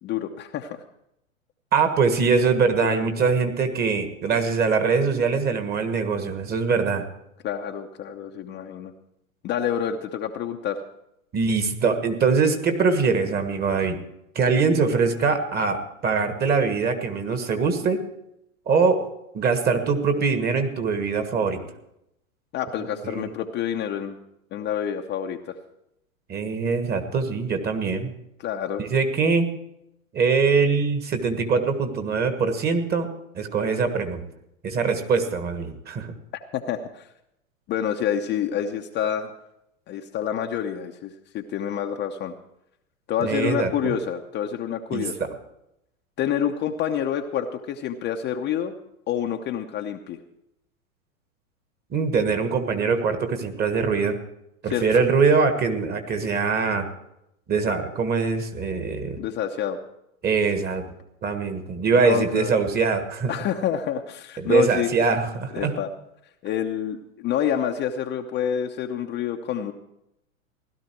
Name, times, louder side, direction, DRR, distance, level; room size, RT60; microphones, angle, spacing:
voice 1, 0.0-0.8 2.8-3.1 7.4-8.9 9.4-10.8 22.5-24.2 24.5-25.6 28.4-28.8 36.5-37.1 37.7-39.3 39.9-42.3 43.1-45.2 46.2-48.7 49.1-50.2 54.7-55.0 59.2-59.8 62.0-62.5 63.3-64.9 65.5-65.9 66.4-69.7, left 9 dB, 25° left, 3 dB, 0.8 m, -28 dB
voice 2, 1.7-7.0 11.3-14.0 14.3-18.0 18.7-19.0 19.3-21.6 23.0-23.3 26.3-28.1 28.8-29.5 30.1-33.1 33.3-34.2 34.6-36.1 43.2-43.9 44.9-45.3 51.9-54.2 54.6-56.9 57.5-59.2 60.2-60.8 61.2-63.3 64.4-65.7, right 5 dB, 25° right, 8 dB, 1.5 m, -23 dB
16.5 x 12.0 x 4.6 m, 0.81 s
hypercardioid pair, 115°, 41 cm